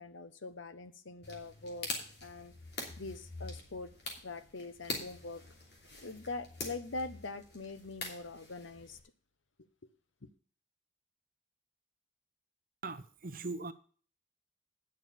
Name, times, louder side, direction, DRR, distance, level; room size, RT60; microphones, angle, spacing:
voice 1, 0.0-1.9 2.2-2.5 3.0-3.9 4.2-5.4 6.0-9.0, left 3 dB, 80° left, 1.0 m, -43 dB
sound 1, 1.2-9.0, left 2 dB, 60° left, 2.9 m, -45 dB
voice 2, 12.8-13.7, right 3 dB, 45° right, 0.8 m, -40 dB
9.6 x 6.5 x 7.1 m
head